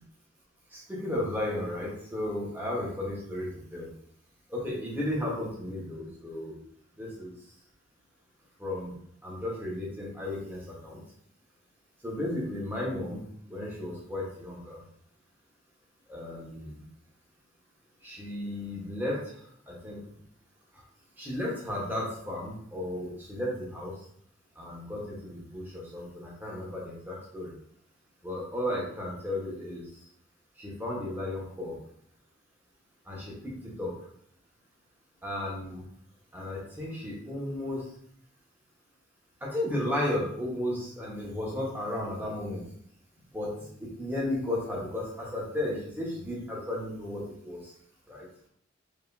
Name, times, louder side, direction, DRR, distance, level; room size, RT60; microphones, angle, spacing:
voice 1, 0.7-3.9 4.5-6.6 7.0-7.3 8.6-8.9 9.2-11.0 12.0-13.2 13.5-14.8 16.1-16.8 18.0-20.0 21.2-24.0 24.5-27.6 28.2-29.8 30.6-31.8 33.0-33.9 35.2-35.8 36.3-37.9 39.4-42.6 43.3-47.7 48.1-48.3, left 1 dB, 10° right, -5 dB, 1.3 m, -34 dB
5.1 x 3.1 x 2.7 m, 0.66 s
head